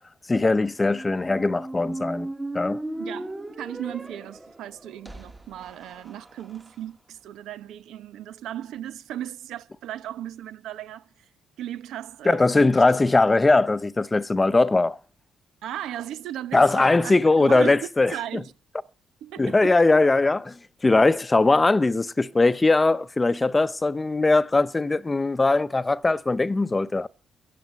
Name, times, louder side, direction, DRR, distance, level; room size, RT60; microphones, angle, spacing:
voice 1, 0.3-2.3 2.5-2.8 12.2-15.0 16.5-18.1 19.4-20.6 20.8-27.1, left 3 dB, 20° left, 0.7 m, -20 dB
Squeak, 0.8-6.7, right 1 dB, 15° right, 1.5 m, -37 dB
voice 2, 3.0-11.3 11.6-12.7 15.6-18.5 19.2-19.8, right 11 dB, 80° right, 0.9 m, -36 dB
15.5 x 8.5 x 8.2 m
cardioid pair, 90°, 0 cm